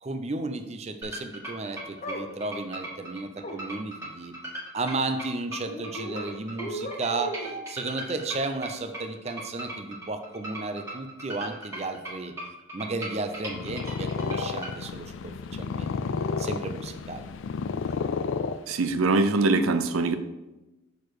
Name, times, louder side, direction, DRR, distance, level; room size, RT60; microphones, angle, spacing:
voice 1, 0.0-4.3 4.7-7.4 7.7-12.3 12.7-16.0 16.4-17.6, right 3 dB, 30° right, 8 dB, 0.5 m, -33 dB
sound 1, 1.0-14.7, right 1 dB, 15° right, 1.7 m, -38 dB
sound 2, 2.0-2.3 3.4-3.6 5.7-6.2 6.6-7.6, right 1 dB, 35° left, 0.9 m, -35 dB
Purr, 13.4-19.1, left 5 dB, 65° left, 0.3 m, -31 dB
voice 2, 18.7-20.2, right 3 dB, 85° right, 10 dB, 0.6 m, -23 dB
6.4 x 4.7 x 4.7 m, 1.0 s
head